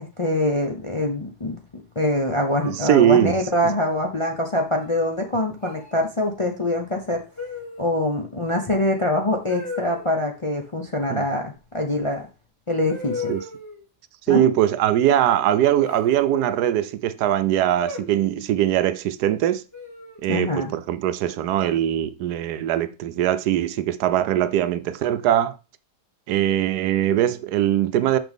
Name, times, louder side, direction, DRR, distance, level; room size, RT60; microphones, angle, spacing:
voice 1, 0.0-7.2 7.8-12.3 12.7-13.3 14.3-14.5 20.3-20.7, left 1 dB, 35° left, 0.5 m, -24 dB
sound 1, 2.6-3.5 4.7-5.1 5.6-5.9 7.4-8.0 9.5-10.1 12.0-12.1 12.9-13.9 15.8-16.9 17.9-18.5 19.7-20.3, left 3 dB, 10° left, 1.5 m, -36 dB
voice 2, 2.6-3.4 11.1-11.2 13.3-13.4 14.3-19.6 20.2-25.6 26.3-28.2, right 11 dB, 80° right, 1.1 m, -21 dB
6.1 x 5.9 x 3.5 m
omnidirectional pair, 1.7 m